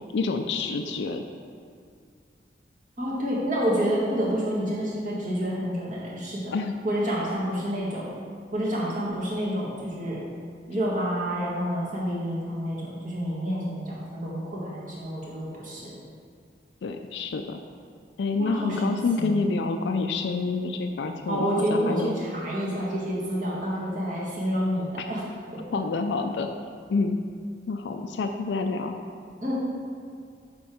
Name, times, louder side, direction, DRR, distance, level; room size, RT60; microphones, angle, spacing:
voice 1, 0.1-1.2 6.5-6.7 16.8-17.6 18.2-22.1 25.7-26.5 26.9-27.2 27.7-29.0, left 4 dB, 80° left, 5 dB, 0.4 m, -27 dB
voice 2, 3.0-6.5 6.8-8.1 8.5-10.2 10.7-16.0 18.4-19.4 21.3-25.2 29.4-29.5, equal, 45° right, -6 dB, 1.7 m, -28 dB
6.9 x 4.5 x 4.9 m, 2.2 s
head